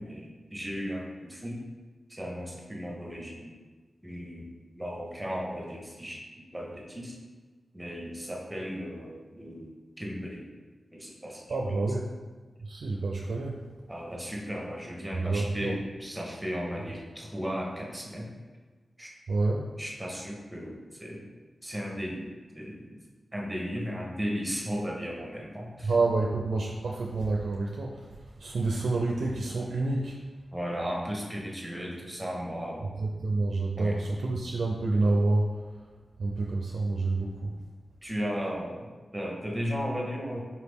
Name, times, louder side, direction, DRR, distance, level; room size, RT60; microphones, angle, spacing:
voice 1, 0.0-1.6 2.1-3.5 4.0-4.5 4.8-6.2 6.5-7.2 7.7-9.7 10.0-10.5 10.9-11.9 13.9-18.3 19.0-19.1 19.8-21.3 21.6-23.0 23.3-25.9 30.5-33.0 33.8-34.0 38.0-40.4, equal, 10° right, -2 dB, 1.1 m, -35 dB
voice 2, 11.5-12.1 12.6-13.6 15.2-15.7 19.3-19.7 25.8-30.2 33.0-35.6 36.2-37.6, right 2 dB, 80° right, -1 dB, 0.4 m, -28 dB
4.3 x 2.9 x 3.5 m, 1.3 s
cardioid pair, 45°, 0 cm